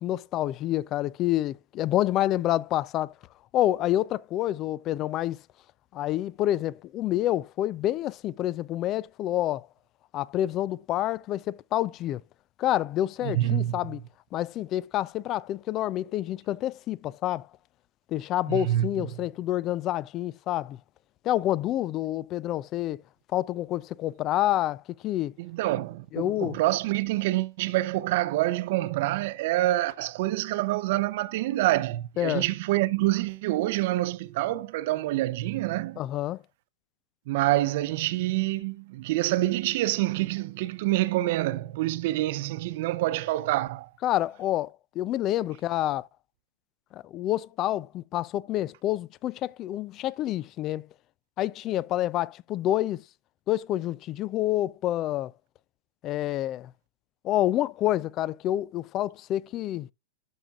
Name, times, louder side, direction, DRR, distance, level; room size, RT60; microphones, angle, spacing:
voice 1, 0.0-3.1 3.5-5.4 5.9-9.7 10.1-12.2 12.6-14.0 14.3-17.5 18.1-20.8 21.2-23.0 23.3-25.3 26.1-26.6 32.2-32.4 36.0-36.4 44.0-46.1 46.9-50.9 51.4-53.0 53.5-55.3 56.0-56.7 57.2-59.9, left 13 dB, 35° left, 0.3 m, -28 dB
voice 2, 13.2-13.8 18.5-18.9 25.4-36.0 37.3-43.9, right 16 dB, 55° right, 0.6 m, -27 dB
12.0 x 5.9 x 2.4 m
hypercardioid pair, 135°, 0 cm